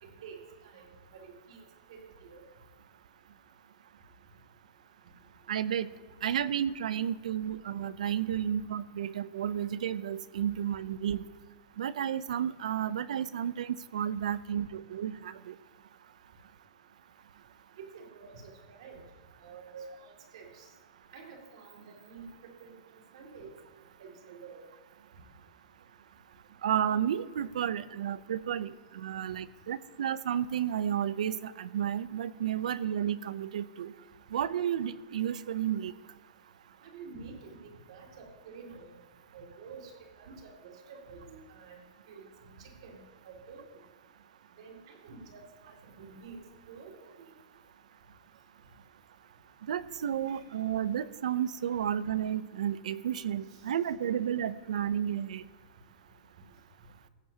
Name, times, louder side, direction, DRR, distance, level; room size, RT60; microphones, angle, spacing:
voice 1, 0.0-2.5 8.3-8.4 17.8-19.0 19.4-20.7 21.1-22.8 23.1-23.5 24.0-24.6 36.8-39.0 39.3-41.8 42.1-43.8 44.6-47.3 50.3-50.4 53.5-53.6, right 4 dB, 55° right, 2 dB, 2.2 m, -49 dB
voice 2, 5.5-5.9 6.2-11.3 11.8-15.5 26.6-33.9 34.3-35.9 49.7-55.4, right 9 dB, 75° right, 17 dB, 0.5 m, -32 dB
15.5 x 10.5 x 2.8 m, 1.5 s
supercardioid pair, 175°, 4 cm